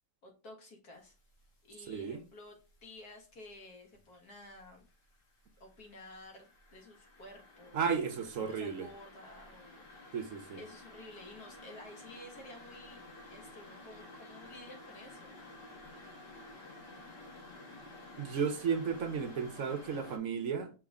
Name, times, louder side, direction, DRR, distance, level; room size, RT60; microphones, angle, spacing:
voice 1, 0.2-1.1 1.6-2.6 2.8-4.8 5.6-7.8 8.4-10.2 10.6-15.4, left 1 dB, 60° left, 2.4 m, -52 dB
sound 1, 1.1-1.5 1.9-3.4 3.8-20.2, left 2 dB, 75° left, 2.4 m, -52 dB
voice 2, 1.9-2.2 7.7-8.9 10.1-10.6 18.2-20.7, right 6 dB, 55° right, 1.1 m, -34 dB
6.0 x 4.6 x 3.7 m
omnidirectional pair, 1.9 m